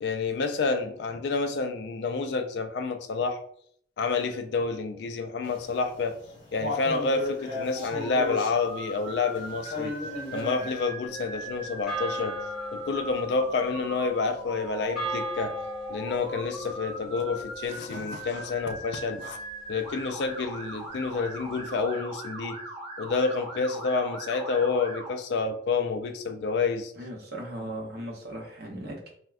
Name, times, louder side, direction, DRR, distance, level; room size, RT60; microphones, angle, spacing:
voice 1, 0.0-3.4 4.0-6.2 6.5-9.9 10.3-12.3 12.7-15.5 15.9-19.4 19.7-22.6 23.0-26.9, left 4 dB, 60° left, 7 dB, 0.3 m, -29 dB
sound 1, 5.4-10.8, left 2 dB, 30° left, 0.8 m, -36 dB
Motor vehicle (road) / Siren, 7.8-25.1, right 1 dB, 30° right, 1.1 m, -40 dB
sound 2, 11.0-19.5, equal, ahead, 1.1 m, -38 dB
voice 2, 27.0-29.1, right 1 dB, 55° right, 0 dB, 0.7 m, -38 dB
3.5 x 2.1 x 2.3 m, 0.64 s
head